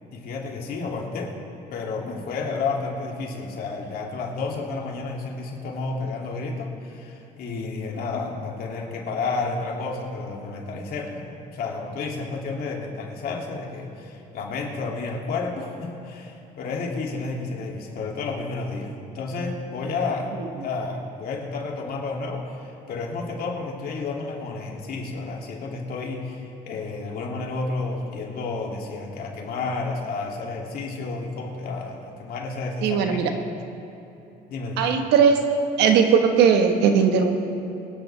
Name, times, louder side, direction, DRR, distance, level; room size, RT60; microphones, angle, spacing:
voice 1, 0.1-1.3 1.7-20.3 20.6-33.3 34.5-34.9, left 3 dB, 65° left, -1 dB, 2.5 m, -31 dB
voice 2, 32.8-33.3 34.8-35.4 35.8-37.3, right 6 dB, 90° right, 5 dB, 1.3 m, -18 dB
24.0 x 10.0 x 3.4 m, 2.9 s
cardioid pair, 110°, 17 cm